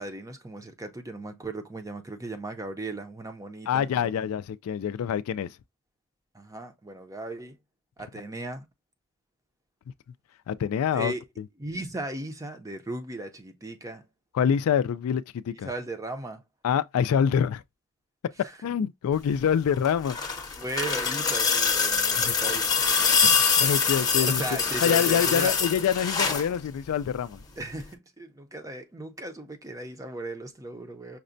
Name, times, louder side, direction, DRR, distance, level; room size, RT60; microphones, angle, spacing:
voice 1, 0.0-4.3 6.3-7.6 8.0-8.7 10.9-11.2 11.6-14.0 15.6-16.4 20.6-22.7 23.6-23.8 24.1-25.5 27.6-31.2, right 2 dB, 15° right, 0.5 m, -36 dB
voice 2, 3.7-5.6 10.5-11.4 14.3-15.7 16.6-17.6 18.6-20.2 22.2-22.3 23.2-27.4, left 8 dB, 75° left, 0.3 m, -26 dB
sound 1, 19.7-26.5 27.8-27.9, left 5 dB, 20° left, 0.7 m, -24 dB
5.8 x 2.1 x 2.5 m
head